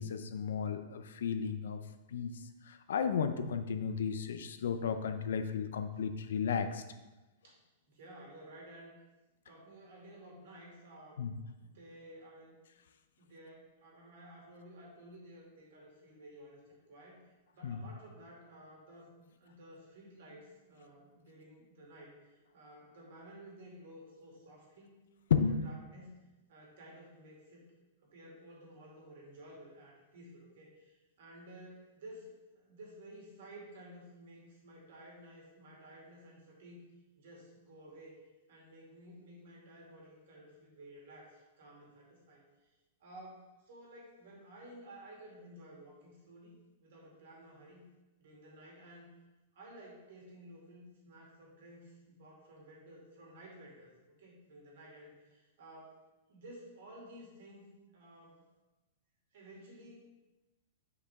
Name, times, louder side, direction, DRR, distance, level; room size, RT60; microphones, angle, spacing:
voice 1, 0.0-1.8 2.1-2.3 2.7-6.8 11.2-11.3 17.6-17.8 25.3-25.5, left 7 dB, 85° left, 9 dB, 0.6 m, -33 dB
voice 2, 7.9-8.9 9.5-11.2 11.6-12.6 13.2-19.1 19.4-25.0 25.5-26.2 26.5-27.6 28.0-36.9 37.2-38.2 38.5-42.7 43.0-47.9 48.2-49.1 49.5-53.9 54.2-56.0 56.3-58.4 59.3-60.1, right 1 dB, 60° right, -2 dB, 2.3 m, -54 dB
7.2 x 5.0 x 3.5 m, 1.1 s
supercardioid pair, 170°, 0 cm